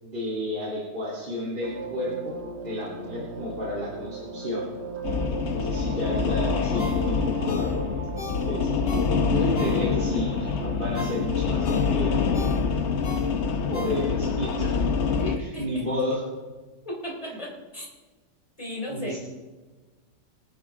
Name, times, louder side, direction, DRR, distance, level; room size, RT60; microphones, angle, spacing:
voice 1, 0.0-2.4 2.6-4.6 5.5-8.7 9.3-12.2 13.7-14.7 15.3-16.2 17.3-17.4 18.9-19.2, left 1 dB, 25° right, -8 dB, 3.5 m, -32 dB
sound 1, 1.6-15.2, right 4 dB, 65° right, 1.8 m, -39 dB
sound 2, 5.0-15.4, left 5 dB, 50° left, 0.9 m, -25 dB
Ringtone, 6.8-10.2 10.6-14.4 14.8-14.9, left 2 dB, 85° left, 4.0 m, -40 dB
voice 2, 15.2-15.9 16.9-17.9 18.6-19.2, equal, 20° left, -3 dB, 3.6 m, -35 dB
25.5 x 9.0 x 3.7 m, 1.3 s
omnidirectional pair, 2.0 m